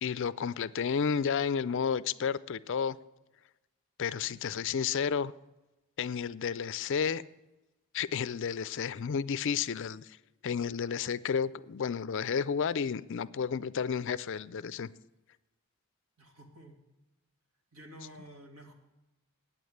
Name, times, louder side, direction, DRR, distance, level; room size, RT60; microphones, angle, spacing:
voice 1, 0.0-3.0 4.0-5.3 6.0-7.2 7.9-10.2 10.4-14.9, left 6 dB, 55° left, 0.4 m, -31 dB
voice 2, 4.0-4.7 16.2-16.8 17.7-18.7, right 1 dB, 70° right, 2.4 m, -52 dB
9.1 x 8.4 x 9.3 m
head